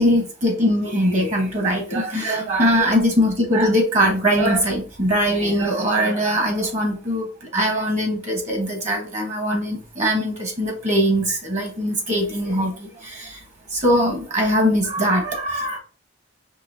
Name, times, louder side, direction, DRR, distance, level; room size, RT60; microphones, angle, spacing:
voice 1, 0.0-7.3 7.5-13.4 13.7-15.8, equal, 40° right, 2 dB, 1.3 m, -21 dB
5.3 x 2.7 x 2.7 m, 0.37 s
head